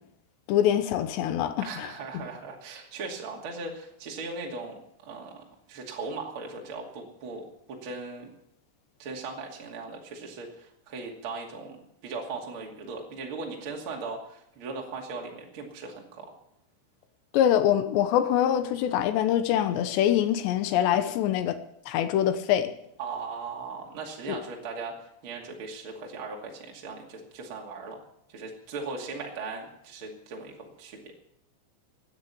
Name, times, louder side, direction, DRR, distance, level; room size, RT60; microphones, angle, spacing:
voice 1, 0.5-1.9 17.3-21.6 21.9-22.7 24.3-24.4, left 10 dB, 75° left, 10 dB, 2.9 m, -24 dB
voice 2, 1.6-8.3 9.0-16.3 23.0-28.0 28.3-31.0, right 4 dB, 35° right, 0 dB, 2.3 m, -38 dB
16.5 x 9.8 x 7.0 m, 0.77 s
omnidirectional pair, 5.6 m